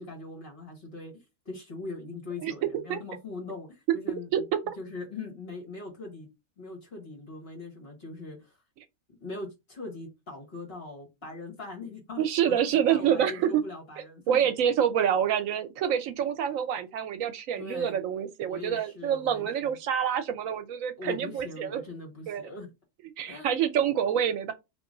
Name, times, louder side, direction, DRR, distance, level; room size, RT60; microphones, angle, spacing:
voice 1, 0.0-4.5 4.8-6.3 6.6-8.6 9.2-14.4 17.6-18.0 18.4-19.8 21.0-22.7 23.3-23.8, left 3 dB, 45° left, 1.6 m, -41 dB
voice 2, 12.2-13.6 14.3-21.8 22.3-22.5 23.2-24.5, right 9 dB, 75° right, 0.9 m, -27 dB
2.9 x 2.6 x 3.7 m
omnidirectional pair, 1.5 m